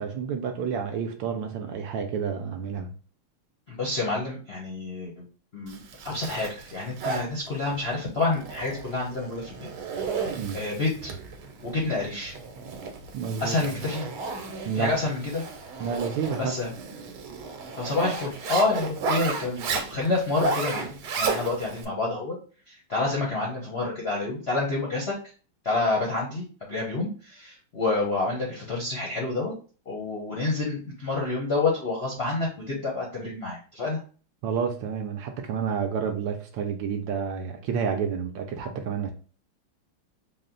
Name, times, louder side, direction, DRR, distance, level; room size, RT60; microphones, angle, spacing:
voice 1, 0.0-2.9 10.4-10.6 13.1-13.8 14.7-15.0 15.8-16.6 34.4-39.1, right 6 dB, 75° right, 1.2 m, -30 dB
voice 2, 3.7-5.3 5.5-9.7 10.2-10.3 10.5-11.2 11.6-12.4 13.4-14.1 14.7-15.4 16.4-16.7 17.8-22.4 22.7-25.2 25.6-29.5 29.9-34.0, left 3 dB, 55° left, 0.7 m, -28 dB
Zipper (clothing), 5.7-21.8, right 4 dB, 90° right, 1.5 m, -34 dB
4.1 x 2.1 x 3.7 m
omnidirectional pair, 2.3 m